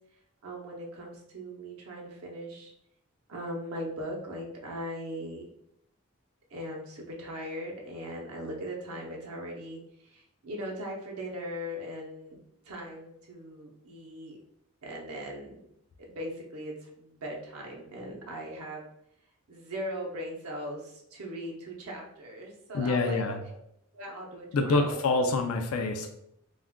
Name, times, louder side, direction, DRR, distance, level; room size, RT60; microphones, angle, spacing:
voice 1, 0.4-2.7 3.3-5.5 6.5-12.4 12.6-14.4 14.8-15.6 16.1-18.9 19.5-23.4 23.9-25.0, equal, 85° right, -1 dB, 0.6 m, -39 dB
voice 2, 22.7-23.4 24.5-26.1, left 3 dB, 80° left, 4 dB, 0.4 m, -26 dB
2.3 x 2.2 x 3.5 m, 0.77 s
head